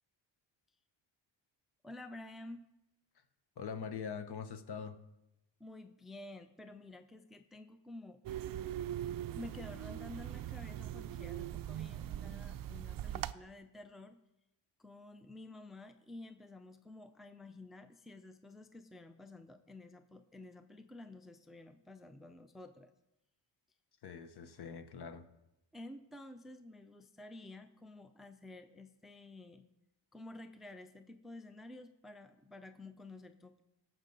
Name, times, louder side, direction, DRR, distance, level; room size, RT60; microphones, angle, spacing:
voice 1, 1.8-2.6 5.6-8.2 9.3-14.2 14.8-22.9 25.7-29.7 30.1-33.6, left 2 dB, ahead, 8 dB, 0.5 m, -51 dB
voice 2, 3.6-5.0 24.0-25.2, left 6 dB, 55° left, 9 dB, 1.1 m, -43 dB
sound 1, 8.2-13.3, right 11 dB, 50° right, 0.4 m, -41 dB
17.5 x 7.4 x 4.0 m, 0.90 s
cardioid pair, 105°, 46 cm